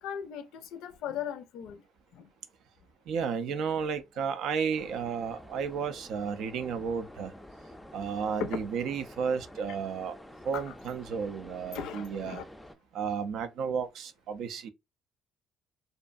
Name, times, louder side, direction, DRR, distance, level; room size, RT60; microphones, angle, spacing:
voice 1, 0.0-1.8 2.1-2.3 8.4-8.6 10.5-10.6 11.7-12.4, left 8 dB, 75° left, 0.4 m, -37 dB
voice 2, 3.1-7.3 7.9-10.2 10.4-12.4 12.9-14.7, right 6 dB, 70° right, 0.4 m, -33 dB
sound 1, 4.7-12.7, equal, 10° left, 0.4 m, -49 dB
2.5 x 2.2 x 2.4 m
hypercardioid pair, 60°, 0 cm